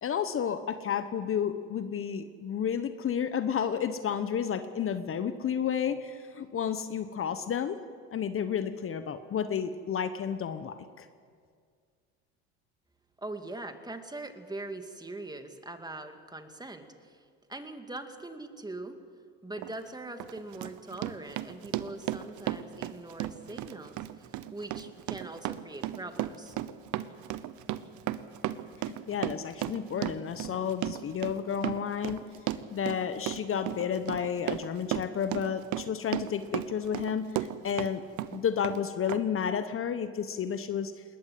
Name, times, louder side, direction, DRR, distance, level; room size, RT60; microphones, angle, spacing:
voice 1, 0.0-7.8 8.1-11.1 28.8-32.2 32.7-38.0 38.3-41.0, left 8 dB, 40° left, 11 dB, 1.1 m, -31 dB
voice 2, 13.2-19.0 19.4-26.6, right 2 dB, 10° right, 7 dB, 2.2 m, -42 dB
Run, 19.6-19.7 20.2-37.9 38.2-38.8 39.1-39.2, right 14 dB, 60° right, 1.0 m, -35 dB
20.5 x 19.0 x 7.8 m, 2.1 s
supercardioid pair, 85°, 33 cm